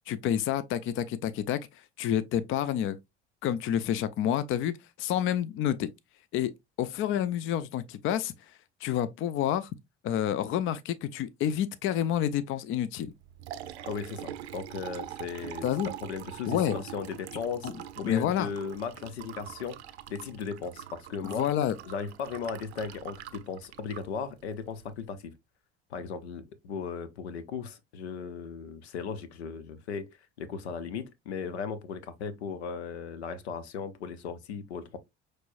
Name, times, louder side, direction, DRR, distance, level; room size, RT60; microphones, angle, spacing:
voice 1, 0.1-1.6 2.0-3.0 3.4-4.7 5.0-5.9 6.3-6.5 6.8-8.3 8.8-9.7 10.0-13.1 15.6-15.9 16.5-16.8 17.6-17.7 18.0-18.5 21.2-21.7, left 10 dB, 40° left, 0.5 m, -28 dB
Liquid, 13.1-25.0, right 11 dB, 75° right, 0.5 m, -44 dB
voice 2, 13.8-17.7 18.0-19.8 20.1-21.5 21.8-25.3 25.9-30.1 30.4-35.0, left 6 dB, 75° left, 0.8 m, -37 dB
6.0 x 3.2 x 2.5 m
figure-of-eight pair, 60°, 33 cm